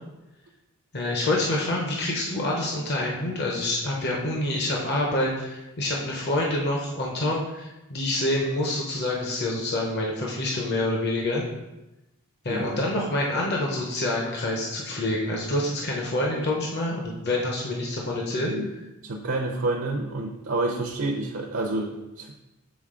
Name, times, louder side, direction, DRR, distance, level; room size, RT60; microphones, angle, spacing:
voice 1, 0.9-11.4 12.4-18.5, left 1 dB, 45° left, -1 dB, 0.8 m, -27 dB
voice 2, 12.5-12.8 18.4-18.7 19.0-22.3, right 2 dB, 60° right, 1 dB, 0.6 m, -29 dB
7.2 x 3.9 x 3.7 m, 0.99 s
head